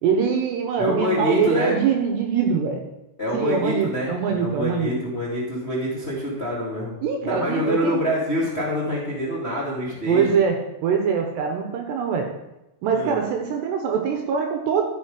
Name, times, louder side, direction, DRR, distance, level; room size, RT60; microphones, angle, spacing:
voice 1, 0.0-2.8 3.3-4.9 7.0-8.0 10.1-10.6 10.8-12.3 12.8-14.8, right 6 dB, 75° right, 3 dB, 2.7 m, -23 dB
voice 2, 0.8-1.7 3.2-6.9 7.2-10.3 12.9-13.2, left 1 dB, 35° left, -5 dB, 1.0 m, -26 dB
13.0 x 6.6 x 5.0 m, 0.94 s
omnidirectional pair, 5.6 m